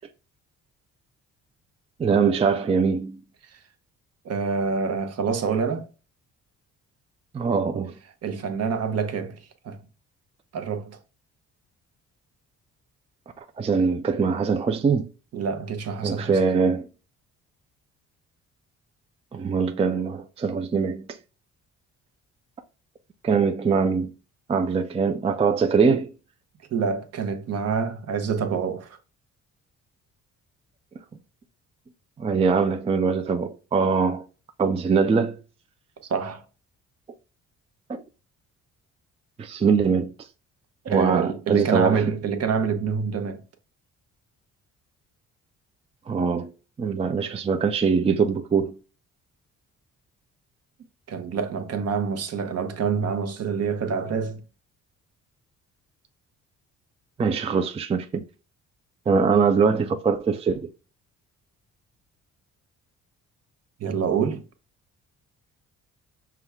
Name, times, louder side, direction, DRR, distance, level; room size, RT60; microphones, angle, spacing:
voice 1, 2.0-3.2 7.3-7.9 13.6-15.1 16.0-16.9 19.3-21.2 23.2-24.1 24.5-26.1 32.2-34.2 34.6-35.4 37.9-38.0 39.4-40.1 40.9-42.0 46.1-46.5 46.8-48.8 57.2-58.2 59.1-60.7, right 5 dB, 20° right, 0.4 m, -22 dB
voice 2, 4.2-5.9 8.2-9.4 9.6-9.8 10.5-11.0 15.3-16.4 26.7-29.0 36.1-36.4 40.8-43.4 51.1-54.4 63.8-64.4, right 6 dB, 55° right, 0.8 m, -26 dB
5.8 x 2.3 x 3.4 m
cardioid pair, 90°, 30 cm